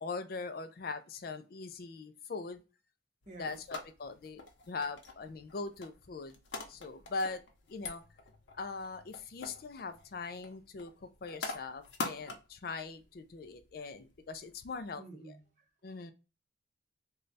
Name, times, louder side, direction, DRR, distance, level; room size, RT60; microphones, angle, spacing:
voice 1, 0.0-2.6 3.4-6.4 6.7-7.4 7.7-8.0 8.5-15.4 15.8-16.1, left 4 dB, 55° left, 0.4 m, -41 dB
sound 1, 3.2-14.9, left 3 dB, 80° left, 0.8 m, -46 dB
voice 2, 3.3-3.6 15.0-15.6, right 2 dB, 40° right, 0.9 m, -50 dB
3.2 x 2.3 x 3.8 m
head